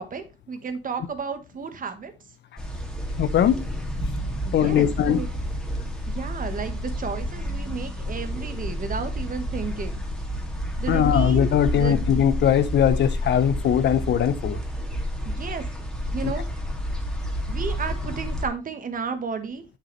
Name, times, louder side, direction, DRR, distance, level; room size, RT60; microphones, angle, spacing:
voice 1, 0.0-2.1 4.5-5.3 6.1-10.0 10.8-11.4 11.7-12.0 15.2-15.6 16.1-16.4 17.5-19.6, right 5 dB, 45° right, 1.3 m, -33 dB
sound 1, 2.6-18.5, equal, 5° left, 2.0 m, -30 dB
voice 2, 3.2-3.6 4.5-5.2 10.9-14.6 16.2-16.3, left 9 dB, 65° left, 0.7 m, -20 dB
7.8 x 6.8 x 3.1 m
cardioid pair, 90°, 20 cm